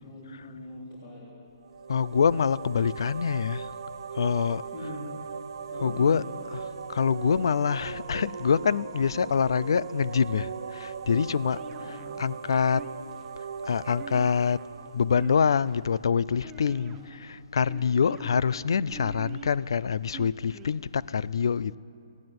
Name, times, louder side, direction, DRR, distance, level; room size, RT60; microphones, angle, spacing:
voice 1, 0.0-1.3 4.7-5.1 5.7-6.2 11.8-12.3 16.7-17.1 18.0-18.4, left 1 dB, 30° left, 3.3 m, -42 dB
sound 1, 1.6-16.3, right 6 dB, 50° right, 0.7 m, -39 dB
voice 2, 1.9-3.7 4.1-4.6 5.8-6.2 6.5-11.6 11.9-12.9 13.6-14.7 14.9-21.8, left 6 dB, 55° left, 0.4 m, -25 dB
sound 2, 11.5-12.2 12.7-13.3 14.0-14.7 15.1-15.8 16.4-17.1 17.7-18.2 18.9-19.6 20.1-20.8, right 7 dB, 10° right, 0.7 m, -44 dB
18.0 x 15.5 x 9.5 m
hypercardioid pair, 175°, 3 cm